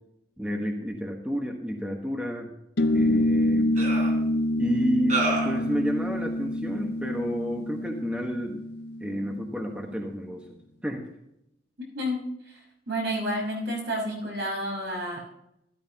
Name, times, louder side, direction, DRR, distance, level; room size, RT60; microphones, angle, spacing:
voice 1, 0.4-2.5 2.9-3.7 4.5-8.6 9.0-10.4 10.8-11.0, equal, 5° right, 1 dB, 1.3 m, -30 dB
sound 1, 2.8-9.7, left 1 dB, 65° left, 0.6 m, -27 dB
sound 2, 2.8-2.9 3.7-4.1 5.1-5.6, right 2 dB, 45° right, 3.8 m, -28 dB
voice 2, 11.9-12.6 12.9-15.2, equal, 70° right, -1 dB, 5.7 m, -30 dB
13.5 x 13.0 x 3.0 m, 0.82 s
head